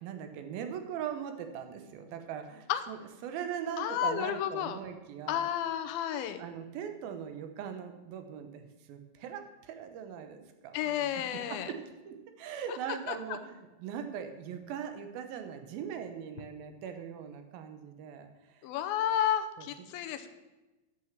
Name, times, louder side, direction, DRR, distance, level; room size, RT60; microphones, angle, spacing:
voice 1, 0.0-5.5 6.4-11.1 11.5-18.7 19.6-19.9, right 8 dB, 80° right, 7 dB, 2.8 m, -41 dB
voice 2, 3.8-4.8 5.3-6.4 10.7-11.7 12.7-12.8 13.1-13.2 18.6-20.3, left 10 dB, 90° left, 9 dB, 2.6 m, -31 dB
11.0 x 6.5 x 7.2 m, 1.1 s
omnidirectional pair, 4.2 m